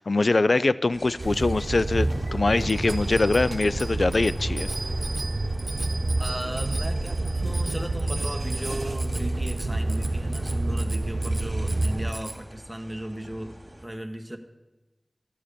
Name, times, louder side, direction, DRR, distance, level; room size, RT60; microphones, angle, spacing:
voice 1, 0.0-4.7, left 3 dB, 70° left, 16 dB, 0.4 m, -23 dB
sound 1, 0.9-13.9, right 1 dB, 25° right, 2.4 m, -47 dB
sound 2, 1.2-12.1, right 2 dB, 70° right, 0.9 m, -28 dB
Bicycle bell, 2.7-12.4, right 2 dB, 50° right, 1.1 m, -39 dB
voice 2, 6.2-14.4, equal, 5° right, 4 dB, 1.1 m, -36 dB
12.5 x 7.6 x 6.8 m, 1.1 s
wide cardioid pair, 45°, 0 cm